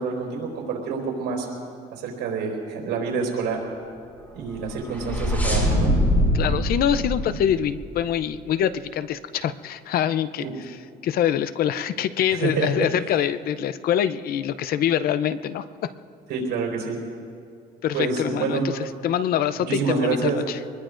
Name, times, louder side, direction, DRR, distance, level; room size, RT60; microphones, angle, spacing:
voice 1, 0.0-1.5 1.9-3.6 4.3-5.9 10.4-10.5 12.3-12.9 16.3-17.0 17.9-18.6 19.7-20.4, right 5 dB, 80° right, 0 dB, 4.3 m, -27 dB
sound 1, 4.5-8.2, equal, 10° left, 4.8 m, -23 dB
voice 2, 6.3-10.8 11.0-15.9 17.8-18.6 19.0-20.6, left 10 dB, 65° left, 14 dB, 0.6 m, -25 dB
24.5 x 21.0 x 2.6 m, 2.3 s
cardioid pair, 110°, 17 cm